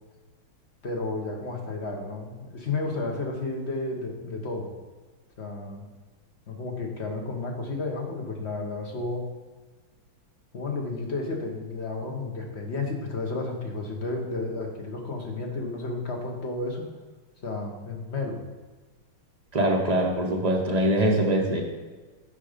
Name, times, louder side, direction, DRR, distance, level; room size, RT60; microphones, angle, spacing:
voice 1, 0.8-4.7 5.4-5.8 6.5-9.3 10.5-16.9 17.4-18.4, left 3 dB, 40° left, 1 dB, 1.1 m, -32 dB
voice 2, 19.5-21.6, right 1 dB, 40° right, -1 dB, 0.6 m, -23 dB
9.0 x 5.0 x 5.0 m, 1.3 s
omnidirectional pair, 2.3 m